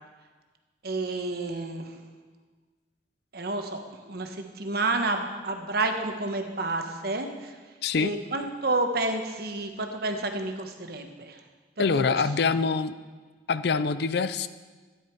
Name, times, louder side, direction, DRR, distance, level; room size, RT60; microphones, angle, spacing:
voice 1, 0.8-1.9 3.3-7.5 8.0-11.4 11.8-12.0, right 2 dB, 55° right, 5 dB, 1.2 m, -30 dB
voice 2, 7.8-8.1 11.8-12.9 13.5-14.5, left 5 dB, 65° left, 13 dB, 0.5 m, -25 dB
13.0 x 10.0 x 4.6 m, 1.4 s
head